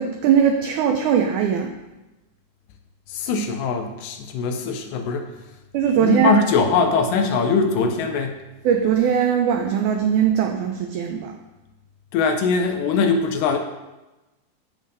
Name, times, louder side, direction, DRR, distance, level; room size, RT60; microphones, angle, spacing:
voice 1, 0.0-1.7 5.7-6.4 8.6-11.3, right 8 dB, 90° right, 3 dB, 1.7 m, -20 dB
voice 2, 3.1-5.3 6.0-8.4 12.1-13.6, left 4 dB, 80° left, 5 dB, 2.1 m, -21 dB
13.5 x 5.4 x 2.6 m, 1.1 s
omnidirectional pair, 4.1 m